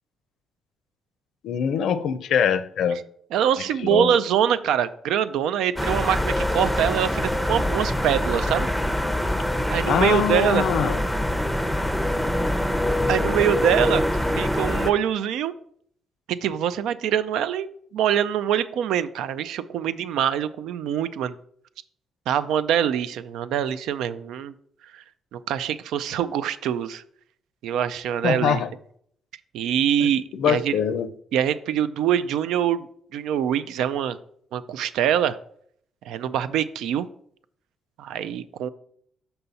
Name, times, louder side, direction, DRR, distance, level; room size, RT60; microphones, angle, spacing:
voice 1, 1.4-3.0 3.8-4.2 9.8-11.0 28.2-28.7 30.0-31.1, left 8 dB, 75° left, 0.5 m, -23 dB
voice 2, 3.3-8.7 9.7-10.6 13.1-14.0 14.3-15.5 16.3-21.3 22.3-24.5 24.9-25.0 25.3-27.0 27.6-28.6 29.5-30.7 31.3-32.9 33.1-34.2 34.5-35.4 36.1-37.1 38.0-38.7, right 9 dB, 85° right, 0.4 m, -24 dB
sound 1, 5.8-14.9, left 1 dB, ahead, 0.6 m, -24 dB
5.6 x 5.5 x 4.0 m
cardioid pair, 90°, 0 cm